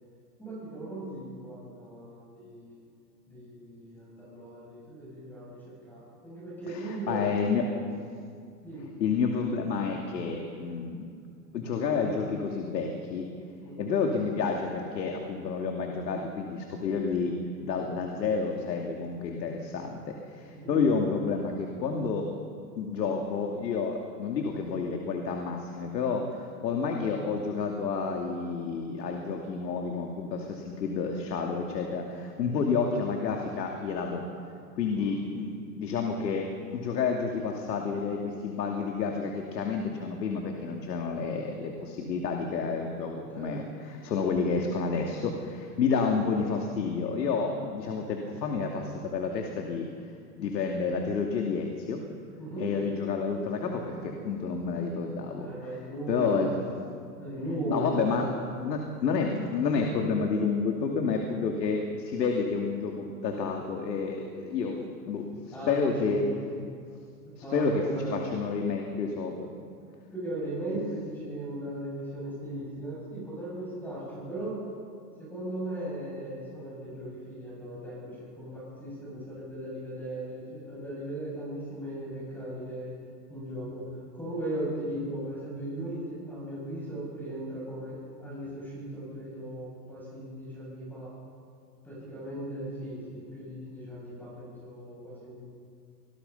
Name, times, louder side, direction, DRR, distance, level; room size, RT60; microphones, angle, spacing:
voice 1, 0.4-2.8 3.3-5.5 5.9-7.7 8.6-8.9 13.6-13.9 20.5-20.8 34.9-35.2 43.3-43.8 52.4-52.7 55.4-56.7 57.2-58.3 65.5-66.4 66.7-66.8 67.2-68.4 70.1-74.6 75.2-83.0 83.3-91.1 91.8-95.4, right 1 dB, 5° left, -5 dB, 7.2 m, -37 dB
voice 2, 6.7-7.7 9.0-11.1 11.5-13.3 13.8-22.3 22.8-34.2 34.7-36.5 36.7-49.9 50.4-52.0 52.6-55.5 56.1-56.5 57.7-58.3 58.6-66.2 67.3-67.8 68.1-69.5, left 5 dB, 85° left, 2 dB, 2.8 m, -30 dB
25.5 x 19.0 x 5.6 m, 2.3 s
supercardioid pair, 170°, 50 cm